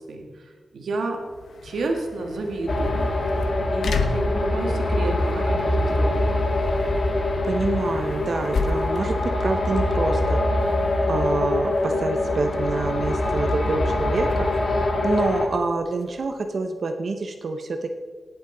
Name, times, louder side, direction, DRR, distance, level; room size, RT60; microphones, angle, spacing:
voice 1, 0.1-1.2 1.6-3.1 3.7-6.2, right 2 dB, 85° right, 2 dB, 1.8 m, -30 dB
sound 1, 1.2-16.5, left 4 dB, 80° left, 0.9 m, -35 dB
sound 2, 2.7-15.5, left 1 dB, 45° left, 1.5 m, -23 dB
voice 2, 7.4-10.8 11.1-17.9, right 3 dB, 45° right, 6 dB, 0.7 m, -27 dB
18.5 x 8.1 x 3.9 m, 1.5 s
wide cardioid pair, 180°, 0 cm